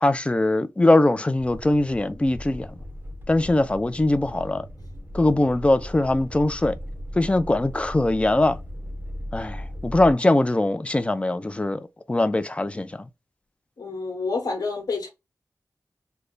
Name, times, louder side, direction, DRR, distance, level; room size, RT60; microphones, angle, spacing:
voice 1, 0.0-2.7 3.3-4.7 5.1-6.7 7.2-8.6 9.3-13.0, left 2 dB, 20° left, 0.4 m, -21 dB
sound 1, 1.4-10.1, left 1 dB, 30° right, 1.0 m, -37 dB
voice 2, 13.8-15.1, left 3 dB, 80° left, 1.1 m, -28 dB
3.2 x 2.3 x 3.8 m
wide cardioid pair, 80°, 6 cm